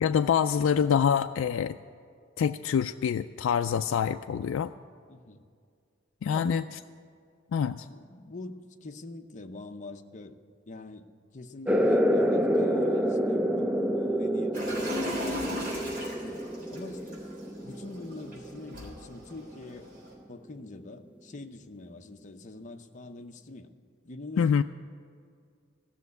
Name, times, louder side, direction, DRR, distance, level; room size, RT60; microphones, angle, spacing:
voice 1, 0.0-1.8 2.4-4.7 6.2-6.6 7.5-7.9 24.4-24.6, left 7 dB, 65° left, 7 dB, 0.3 m, -25 dB
voice 2, 5.1-5.4 6.3-6.6 7.9-10.4 10.7-11.1 11.3-17.3 17.6-19.9 20.3-23.7 24.0-24.6, left 2 dB, 35° left, 5 dB, 0.6 m, -44 dB
sound 1, 11.7-18.8, equal, 5° right, 0.4 m, -28 dB
sound 2, 14.5-20.1, equal, 40° right, 3.5 m, -38 dB
14.5 x 6.7 x 9.4 m, 2.2 s
head